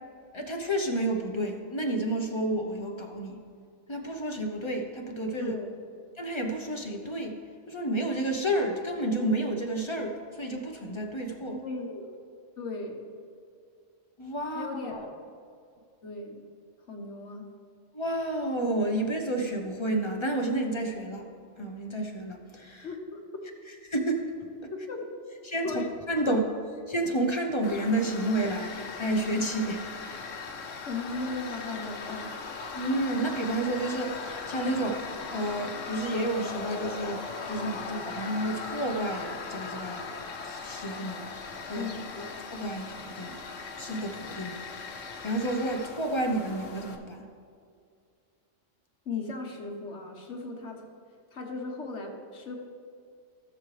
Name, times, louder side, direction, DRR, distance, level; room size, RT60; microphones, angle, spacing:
voice 1, 0.3-3.4 3.9-5.5 6.2-7.4 7.7-11.6 14.2-15.0 17.9-21.2 21.6-22.9 23.9-24.5 25.4-25.7 26.1-26.4 26.9-29.9 32.7-35.0 35.3-40.1 40.4-41.3 41.7-41.9 42.5-43.4 43.8-47.3, right 1 dB, 25° left, 2 dB, 0.9 m, -30 dB
voice 2, 5.4-5.7 11.5-12.1 12.6-13.0 14.5-15.1 16.0-16.5 16.9-17.5 22.8-23.2 24.7-25.1 25.6-25.9 26.2-26.3 30.8-32.3 41.7-42.3 49.0-50.8 51.3-52.6, left 3 dB, 70° left, 1 dB, 1.6 m, -37 dB
Tools, 27.6-46.9, left 4 dB, 90° left, 1.2 m, -39 dB
17.0 x 6.6 x 3.3 m, 2.3 s
omnidirectional pair, 1.3 m